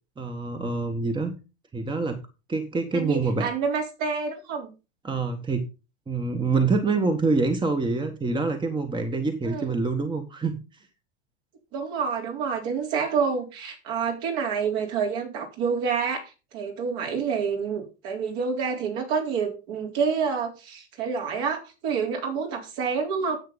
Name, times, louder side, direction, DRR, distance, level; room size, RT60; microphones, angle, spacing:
voice 1, 0.2-1.3 1.7-2.2 2.5-3.5 5.0-5.6 6.1-10.6, right 3 dB, 15° right, 6 dB, 1.5 m, -26 dB
voice 2, 2.9-4.7 9.4-9.8 11.7-23.4, right 6 dB, 55° right, 2 dB, 3.9 m, -28 dB
10.5 x 8.0 x 4.0 m, 0.31 s
hypercardioid pair, 105°, 35 cm